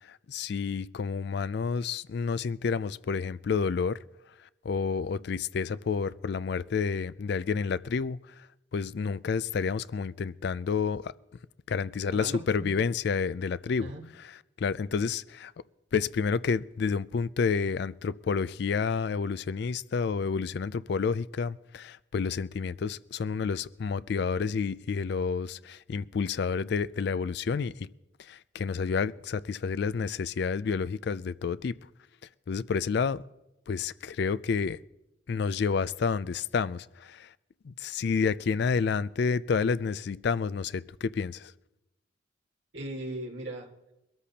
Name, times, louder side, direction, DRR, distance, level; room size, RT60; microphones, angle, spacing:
voice 1, 0.0-4.0 4.4-8.5 8.7-11.1 11.7-13.9 14.6-15.5 15.9-27.9 28.2-31.7 32.5-33.2 33.7-34.8 35.3-37.3 37.6-41.5, left 5 dB, 55° left, 0.4 m, -29 dB
voice 2, 12.1-12.7 13.8-14.1 42.7-43.9, right 1 dB, 75° right, 1.9 m, -39 dB
23.0 x 13.5 x 2.9 m
head